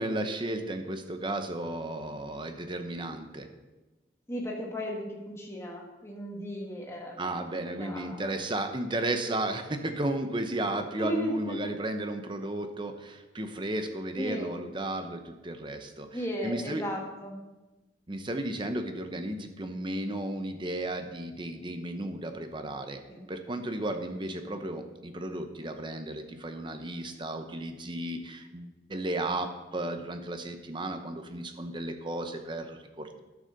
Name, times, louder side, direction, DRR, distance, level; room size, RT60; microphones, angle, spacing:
voice 1, 0.0-3.5 7.2-16.1 16.4-16.8 18.1-23.0 23.3-33.2, right 1 dB, 25° right, 6 dB, 0.9 m, -34 dB
voice 2, 4.3-7.4 7.7-8.4 11.0-11.6 14.2-14.5 16.1-17.4 23.1-23.2, equal, 15° left, -1 dB, 1.8 m, -35 dB
11.0 x 6.7 x 6.6 m, 1.1 s
head